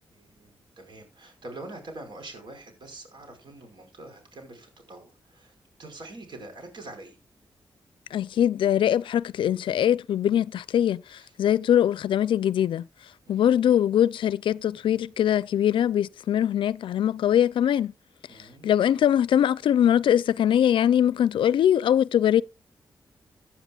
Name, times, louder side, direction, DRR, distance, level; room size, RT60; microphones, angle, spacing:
voice 1, 0.1-5.5 5.8-7.2 11.2-11.3 13.2-13.4 18.3-18.7, right 2 dB, 65° right, 5.1 m, -44 dB
voice 2, 8.1-12.8 13.3-17.9 18.6-22.4, left 10 dB, 85° left, 0.4 m, -22 dB
15.5 x 9.8 x 2.4 m
cardioid pair, 65°, 8 cm